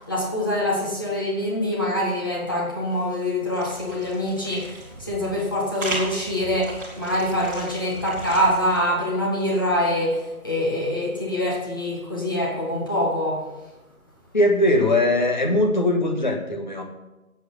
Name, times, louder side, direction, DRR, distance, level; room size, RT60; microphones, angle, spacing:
voice 1, 0.0-13.5, left 1 dB, 15° left, -4 dB, 1.5 m, -25 dB
sound 1, 2.9-8.8, right 2 dB, 15° right, 2.2 m, -37 dB
voice 2, 14.3-16.8, left 1 dB, 30° left, 2 dB, 1.6 m, -20 dB
16.0 x 7.9 x 5.8 m, 1.0 s
figure-of-eight pair, 175°, 43 cm